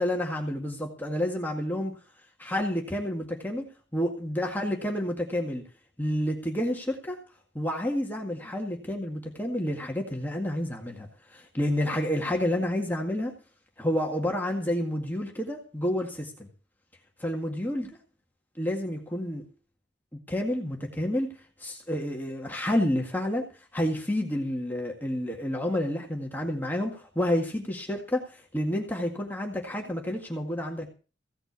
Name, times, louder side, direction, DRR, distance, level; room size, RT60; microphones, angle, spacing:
voice 1, 0.0-1.9 2.4-5.6 6.0-7.2 7.6-13.3 13.8-16.5 17.2-17.9 18.6-19.4 20.3-23.5 23.7-30.9, left 1 dB, 10° left, 0 dB, 1.9 m, -29 dB
16.0 x 5.9 x 8.2 m, 0.36 s
head